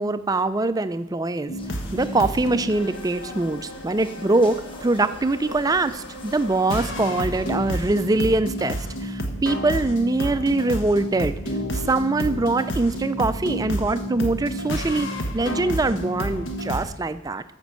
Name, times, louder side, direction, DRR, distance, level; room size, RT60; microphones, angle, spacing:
voice 1, 0.0-1.5 1.9-11.4 11.7-15.1 15.3-17.4, right 2 dB, 15° right, 12 dB, 0.3 m, -23 dB
sound 1, 1.5-16.8, equal, 65° left, 1.4 m, -31 dB
crowd waitingarea bus station, 1.6-8.4, left 1 dB, 25° left, 1.3 m, -43 dB
12.5 x 5.3 x 7.5 m, 0.94 s
head